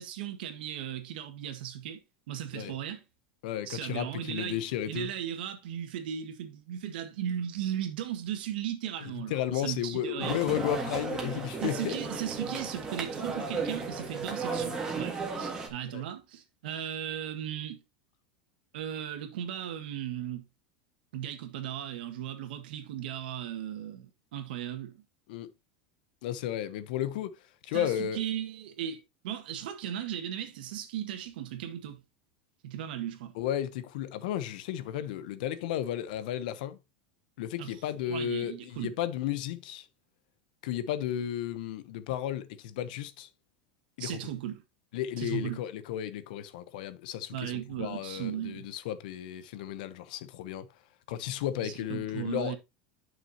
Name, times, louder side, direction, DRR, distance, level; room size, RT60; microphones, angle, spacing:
voice 1, 0.0-2.0 2.3-3.0 3.7-4.6 4.9-10.4 11.6-17.8 18.7-20.4 21.1-25.0 27.7-32.0 32.6-33.3 37.6-37.8 38.0-38.9 44.0-44.6 45.2-45.6 47.3-48.7 51.6-52.6, right 10 dB, 75° right, 1.7 m, -36 dB
voice 2, 3.4-5.1 9.3-11.9 15.9-16.0 25.3-25.5 26.2-27.3 27.6-28.2 33.4-36.8 37.4-39.9 40.6-43.3 44.0-44.2 44.9-50.7 51.1-52.5, left 11 dB, 65° left, 0.8 m, -33 dB
sound 1, 10.2-15.7, right 4 dB, 10° right, 1.7 m, -34 dB
9.8 x 6.1 x 2.9 m
supercardioid pair, 165°, 5 cm